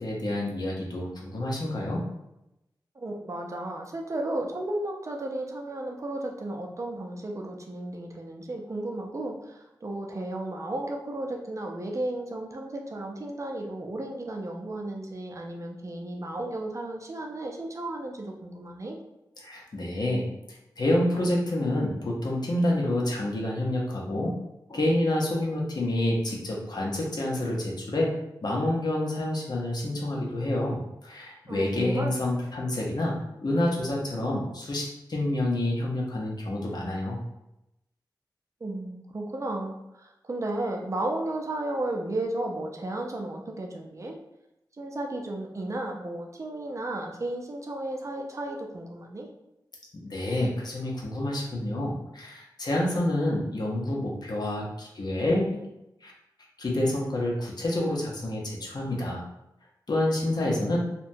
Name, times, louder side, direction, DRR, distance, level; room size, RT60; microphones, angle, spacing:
voice 1, 0.0-2.0 19.4-20.3 20.8-24.3 24.7-28.1 28.4-33.1 33.4-37.2 49.9-55.6 56.0-56.1 56.6-59.2 59.9-60.8, left 1 dB, 60° left, -3 dB, 0.7 m, -28 dB
voice 2, 3.0-19.0 31.5-32.1 38.6-44.2 44.8-49.3 60.4-60.7, right 1 dB, 40° right, 1 dB, 0.4 m, -34 dB
2.8 x 2.2 x 2.6 m, 0.89 s
wide cardioid pair, 85°, 8 cm